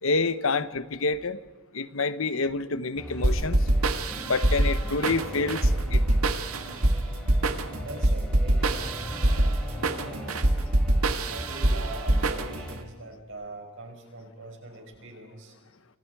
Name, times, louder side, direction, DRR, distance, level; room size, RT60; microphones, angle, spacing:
voice 1, 0.0-1.4 1.7-3.6 4.2-6.0, left 3 dB, 65° left, 1.0 m, -28 dB
sound 1, 3.0-12.8, left 1 dB, 5° left, 5.5 m, -40 dB
sound 2, 3.2-12.8, right 1 dB, 85° right, 1.7 m, -24 dB
voice 2, 7.8-10.5 11.0-15.5, right 2 dB, 60° right, 5.8 m, -42 dB
29.5 x 25.0 x 4.8 m
head